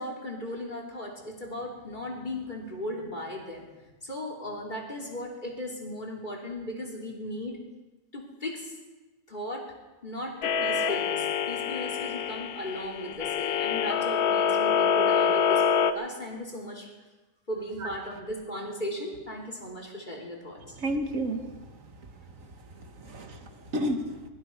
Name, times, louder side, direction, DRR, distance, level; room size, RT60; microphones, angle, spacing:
voice 1, 0.0-3.6 4.0-7.6 8.1-8.7 9.3-9.7 10.0-16.9 17.5-20.6, left 1 dB, 25° left, -1 dB, 3.2 m, -37 dB
sound 1, 10.4-15.9, left 6 dB, 70° left, 1.2 m, -26 dB
voice 2, 20.8-21.4 22.8-24.1, right 1 dB, 55° right, 5 dB, 1.9 m, -31 dB
22.0 x 14.5 x 4.6 m, 1.2 s
omnidirectional pair, 1.8 m